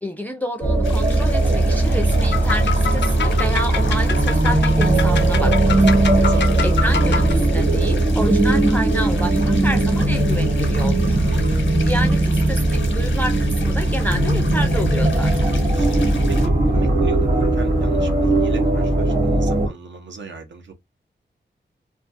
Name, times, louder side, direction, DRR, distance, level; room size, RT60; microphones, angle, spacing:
voice 1, 0.0-11.2 11.5-15.5, equal, 10° left, 0.4 m, -29 dB
sound 1, 0.6-19.7, right 2 dB, 45° right, 1.2 m, -18 dB
sound 2, 0.8-16.5, left 4 dB, 90° left, 0.9 m, -37 dB
sound 3, 2.3-7.3, left 7 dB, 70° left, 0.5 m, -27 dB
voice 2, 6.1-6.6 11.1-11.7 15.5-15.9 16.3-20.7, right 4 dB, 75° right, 0.8 m, -37 dB
2.5 x 2.3 x 2.5 m
wide cardioid pair, 110°, 19 cm